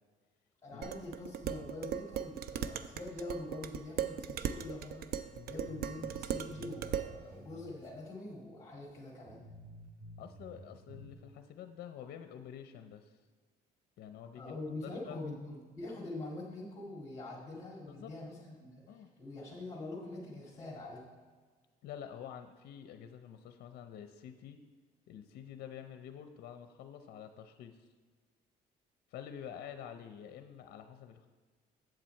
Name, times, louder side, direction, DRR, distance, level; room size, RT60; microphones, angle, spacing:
voice 1, 0.6-9.5 14.3-21.0, left 2 dB, 20° left, -6 dB, 2.0 m, -44 dB
Dishes pots and pans, 0.8-7.2, right 9 dB, 65° right, 0.5 m, -38 dB
sound 1, 5.7-7.7 8.0-8.1 8.7-8.8 9.3-11.1, equal, 50° right, 2.8 m, -52 dB
voice 2, 10.2-13.2 14.0-14.6 14.8-15.2 17.9-18.1 18.9-19.1 21.8-24.6 25.1-27.9 29.1-31.3, left 9 dB, 65° left, 8 dB, 0.6 m, -48 dB
7.7 x 7.5 x 4.4 m, 1.4 s
cardioid pair, 110°, 17 cm